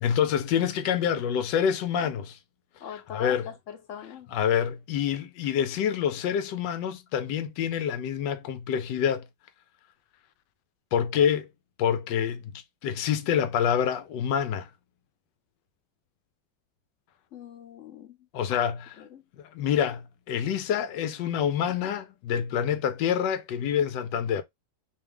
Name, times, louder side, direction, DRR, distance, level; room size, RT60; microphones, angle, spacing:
voice 1, 0.0-2.4 3.1-3.4 4.3-9.3 10.9-11.5 11.8-14.7 18.3-18.8 19.4-24.4, left 8 dB, 75° left, 1.2 m, -27 dB
voice 2, 2.8-4.3 17.3-18.2 18.5-18.6 19.0-19.2, left 8 dB, 50° left, 1.0 m, -41 dB
3.5 x 3.2 x 3.4 m
omnidirectional pair, 2.0 m